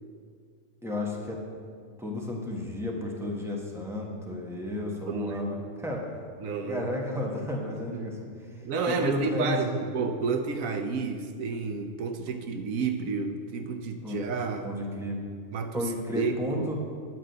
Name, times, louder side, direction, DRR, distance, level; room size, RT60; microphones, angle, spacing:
voice 1, 0.8-1.4 2.0-6.2 6.6-8.2 8.5-9.9 14.0-14.2 14.6-15.2 15.7-16.8, left 1 dB, ahead, -2 dB, 1.3 m, -32 dB
voice 2, 5.1-5.7 6.4-6.9 7.9-8.1 8.6-14.7 15.5-16.7, right 5 dB, 85° right, 7 dB, 1.2 m, -31 dB
11.0 x 5.1 x 7.8 m, 2.2 s
omnidirectional pair, 1.4 m